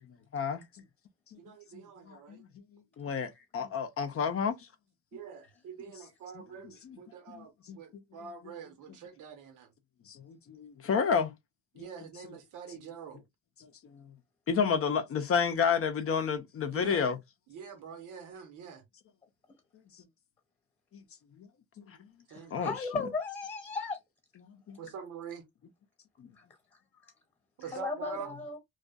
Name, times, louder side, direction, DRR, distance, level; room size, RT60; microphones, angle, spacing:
voice 1, 0.3-0.6 1.3-1.4 1.7-2.5 3.0-4.7 7.7-7.8 10.1-11.3 11.8-11.9 13.6-14.0 14.5-17.2 20.9-21.0 21.4-21.5 21.8-22.0 22.5-22.7 24.4-24.8 26.2-26.3, left 6 dB, 50° left, 0.5 m, -30 dB
voice 2, 1.3-2.4 5.1-9.7 11.7-13.2 16.7-17.1 17.5-18.8 22.3-22.7 24.8-25.4 27.6-28.3, right 7 dB, 80° right, 1.0 m, -45 dB
voice 3, 22.3-24.0 26.3-26.4 27.7-28.6, left 4 dB, 20° left, 1.0 m, -36 dB
2.5 x 2.3 x 2.3 m
cardioid pair, 90°, 30 cm